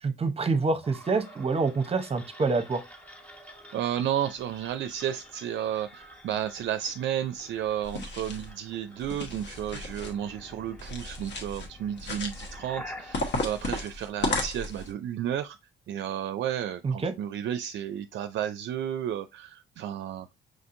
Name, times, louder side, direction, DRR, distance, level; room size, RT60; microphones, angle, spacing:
voice 1, 0.0-2.8 16.8-17.1, right 4 dB, 30° right, 0.7 m, -27 dB
sound 1, 0.8-14.7, equal, 5° left, 1.4 m, -49 dB
voice 2, 3.7-15.6 15.9-20.3, right 10 dB, 65° right, 0.4 m, -32 dB
sound 2, 7.8-8.5 9.0-10.1 10.8-11.7 12.0-12.6 13.1-14.9, left 2 dB, 60° left, 1.3 m, -33 dB
6.2 x 2.6 x 2.5 m
cardioid pair, 90°, 20 cm